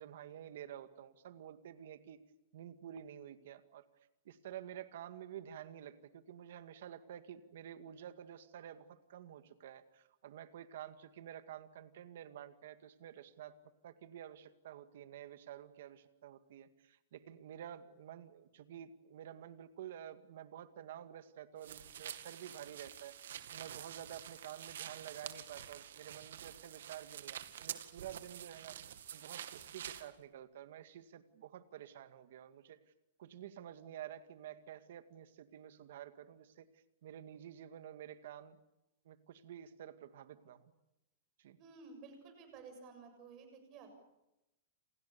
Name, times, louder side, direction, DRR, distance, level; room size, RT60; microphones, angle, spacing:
voice 1, 0.0-2.2 2.5-3.8 4.3-13.6 13.8-23.1 23.5-28.8 29.1-32.8 33.2-36.7 37.0-38.6 39.1-40.7 41.4-41.6, right 10 dB, 55° right, 10 dB, 2.1 m, -50 dB
sound 1, 21.6-30.1, right 10 dB, 75° right, 2.2 m, -48 dB
voice 2, 41.6-43.9, right 4 dB, 25° right, 6 dB, 7.2 m, -54 dB
28.5 x 28.5 x 7.0 m, 0.92 s
supercardioid pair, 175°, 0 cm